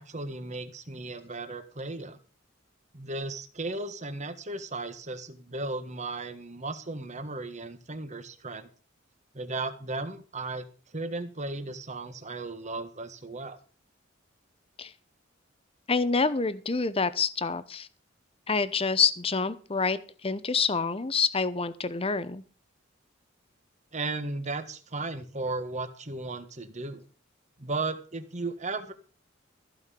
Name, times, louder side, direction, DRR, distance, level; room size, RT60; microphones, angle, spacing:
voice 1, 0.0-2.2 2.9-8.7 9.3-13.6 23.9-27.0 27.6-28.9, right 3 dB, 35° right, 9 dB, 1.5 m, -35 dB
voice 2, 15.9-17.9 18.5-22.4, left 5 dB, 30° left, 14 dB, 0.9 m, -27 dB
15.0 x 5.7 x 8.4 m, 0.39 s
head